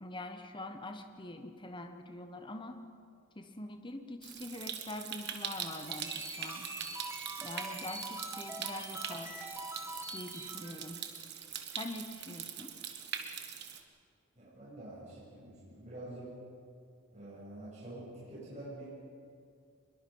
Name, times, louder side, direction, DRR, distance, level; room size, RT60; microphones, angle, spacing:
voice 1, 0.0-2.8 3.3-6.7 7.4-9.6 10.1-11.0 11.8-12.7, left 1 dB, 20° left, 6 dB, 1.1 m, -44 dB
Stream, 4.2-13.8, right 8 dB, 50° right, 1.5 m, -42 dB
sound 1, 5.7-10.8, right 1 dB, 10° right, 1.5 m, -44 dB
voice 2, 14.3-16.3 17.1-18.9, right 1 dB, 30° right, -9 dB, 7.8 m, -47 dB
23.5 x 22.0 x 5.5 m, 2.3 s
head